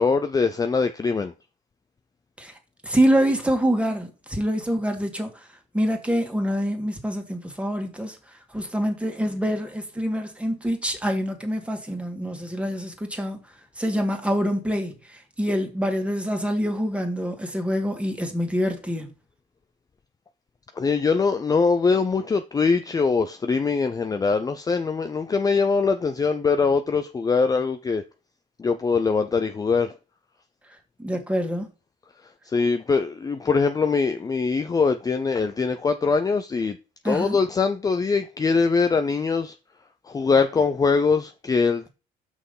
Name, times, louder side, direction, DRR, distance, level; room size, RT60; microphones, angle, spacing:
voice 1, 0.0-1.3 20.8-28.0 28.6-29.9 32.5-36.8 37.0-39.6 40.1-41.9, left 4 dB, 20° left, 0.6 m, -22 dB
voice 2, 2.8-5.3 5.7-8.2 8.5-13.4 13.8-19.1 31.0-31.7 37.0-37.4, equal, 5° right, 2.1 m, -25 dB
6.3 x 5.6 x 5.4 m
cardioid pair, 110°, 17 cm